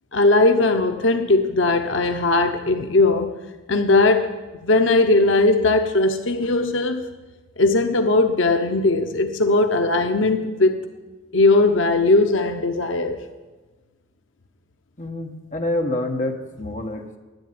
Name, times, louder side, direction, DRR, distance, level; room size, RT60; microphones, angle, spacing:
voice 1, 0.1-3.3 3.7-4.4 4.6-7.1 7.6-10.8 11.3-13.2, left 2 dB, 80° left, 6 dB, 0.8 m, -19 dB
voice 2, 15.0-17.2, left 1 dB, 40° left, 3 dB, 1.2 m, -27 dB
10.5 x 8.0 x 9.4 m, 1.3 s
head